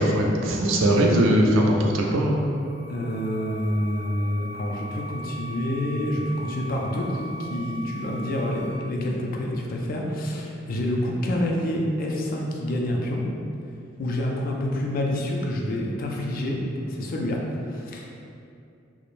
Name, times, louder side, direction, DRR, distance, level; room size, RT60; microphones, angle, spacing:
voice 1, 0.0-2.4, right 1 dB, 75° right, -1 dB, 0.4 m, -20 dB
sound 1, 2.2-8.7, right 1 dB, 10° right, 0.5 m, -40 dB
voice 2, 2.9-13.2 14.0-16.6 16.9-17.4 17.7-18.1, left 1 dB, 45° left, -1 dB, 0.3 m, -27 dB
2.4 x 2.0 x 3.0 m, 2.5 s
head